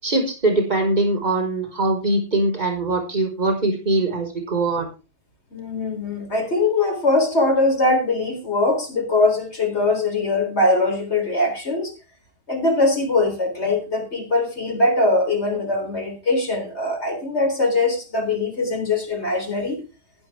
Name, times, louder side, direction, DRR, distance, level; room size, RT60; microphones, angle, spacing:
voice 1, 0.0-4.8, right 2 dB, 35° right, 2 dB, 5.0 m, -22 dB
voice 2, 5.5-11.9 12.5-19.8, left 2 dB, 60° left, 4 dB, 4.2 m, -21 dB
16.0 x 11.0 x 3.5 m, 0.31 s
omnidirectional pair, 1.3 m